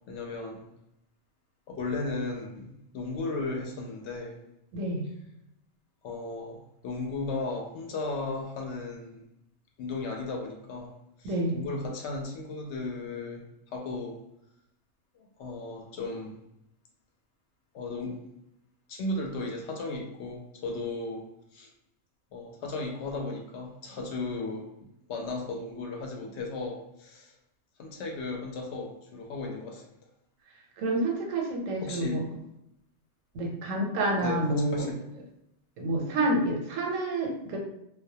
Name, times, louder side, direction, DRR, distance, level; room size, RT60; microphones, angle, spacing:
voice 1, 0.1-0.6 1.7-4.4 6.0-9.2 9.8-10.9 11.2-14.2 15.1-16.4 17.7-18.2 18.9-21.2 21.5-21.7 22.3-24.7 25.1-27.3 27.8-29.8 31.8-32.4 34.2-35.0, left 3 dB, 70° left, 1 dB, 0.8 m, -35 dB
voice 2, 4.7-5.1 11.2-11.6 30.8-32.2 33.3-34.9 35.8-37.6, right 1 dB, 90° right, 0 dB, 1.0 m, -28 dB
2.2 x 2.0 x 2.7 m, 0.81 s
omnidirectional pair, 1.3 m